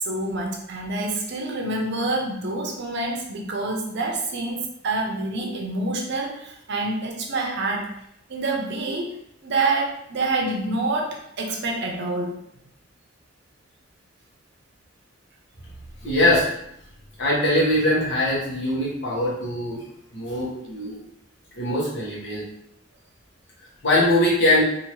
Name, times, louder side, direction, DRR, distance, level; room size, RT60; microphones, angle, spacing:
voice 1, 0.0-7.9 8.3-9.1 9.4-12.4, right 2 dB, 60° right, 1 dB, 0.6 m, -27 dB
voice 2, 16.0-16.5 17.2-19.8 20.1-21.0 21.6-22.4 23.8-24.6, left 1 dB, 65° left, -5 dB, 1.2 m, -21 dB
2.7 x 2.6 x 3.1 m, 0.75 s
head